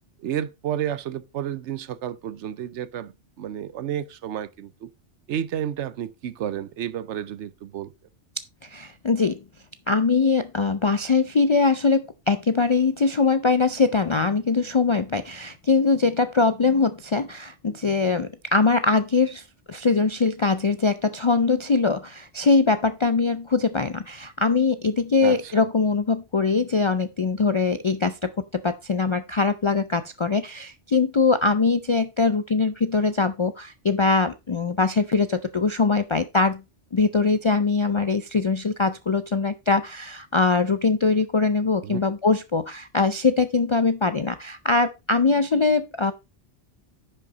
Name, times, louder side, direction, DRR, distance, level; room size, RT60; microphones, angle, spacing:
voice 1, 0.2-4.9 5.3-7.9 25.2-25.6 41.8-42.0, right 10 dB, 80° right, 1.0 m, -31 dB
voice 2, 8.6-9.4 9.9-36.6 36.9-46.1, left 4 dB, 55° left, 0.3 m, -22 dB
10.5 x 5.7 x 3.9 m
omnidirectional pair, 1.2 m